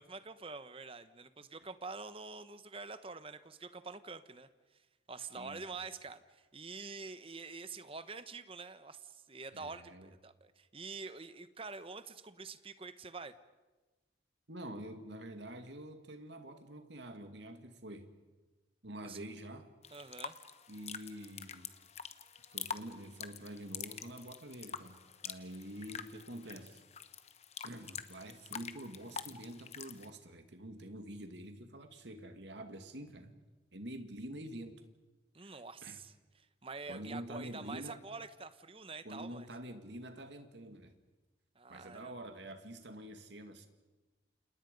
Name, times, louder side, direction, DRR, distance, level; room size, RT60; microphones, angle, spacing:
voice 1, 0.0-4.8 5.1-13.3 19.0-19.2 19.9-20.4 35.3-36.1 36.6-39.5 41.5-42.1, right 4 dB, 30° right, 12 dB, 1.1 m, -46 dB
voice 2, 5.4-5.8 9.5-10.1 14.5-18.1 18.8-19.7 20.7-21.7 22.5-26.8 27.6-33.4 33.7-34.7 35.4-36.0 36.9-38.0 39.0-40.9 41.7-43.7, right 1 dB, 70° right, 7 dB, 2.3 m, -47 dB
sound 1, 19.8-30.1, left 7 dB, 35° left, 1.0 m, -46 dB
29.5 x 28.0 x 5.4 m, 1.2 s
head